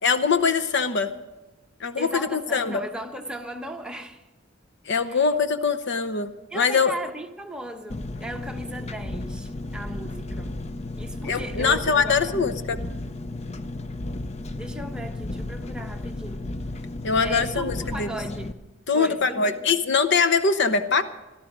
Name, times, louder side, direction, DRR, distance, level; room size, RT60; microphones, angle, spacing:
voice 1, 0.0-1.1 1.8-2.8 4.9-6.9 11.2-12.8 17.0-18.1 18.9-21.0, left 5 dB, 60° left, 0.8 m, -23 dB
voice 2, 2.0-4.2 5.0-5.2 6.5-10.6 11.0-12.6 14.6-16.5 17.2-18.6 18.9-19.9, right 1 dB, 5° right, 1.1 m, -37 dB
Engine, 7.9-18.5, left 2 dB, 35° left, 0.6 m, -34 dB
17.5 x 12.5 x 6.0 m
head